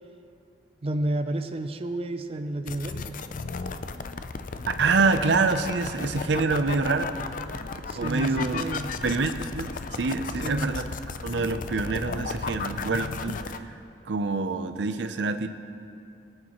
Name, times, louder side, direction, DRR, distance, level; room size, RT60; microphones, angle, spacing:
voice 1, 0.8-3.2 7.9-8.9 10.4-10.7, right 1 dB, 35° right, 7 dB, 0.4 m, -31 dB
sound 1, 2.7-13.6, left 4 dB, 50° left, 0.5 m, -34 dB
voice 2, 4.8-7.3 8.0-8.7 9.0-10.9 11.2-13.8 14.1-15.5, right 4 dB, 75° right, 9 dB, 0.6 m, -26 dB
22.0 x 8.7 x 3.0 m, 2.5 s
head